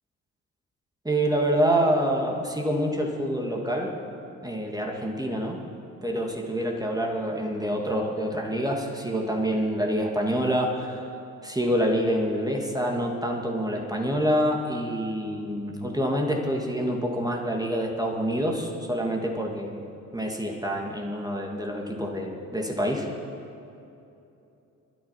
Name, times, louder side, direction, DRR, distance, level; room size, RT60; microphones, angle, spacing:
voice 1, 1.0-3.9 4.4-5.6 6.0-11.0 11.4-19.8 20.1-23.1, equal, 10° right, 0 dB, 1.8 m, -27 dB
24.5 x 13.0 x 2.9 m, 2.8 s
figure-of-eight pair, 40°, 43 cm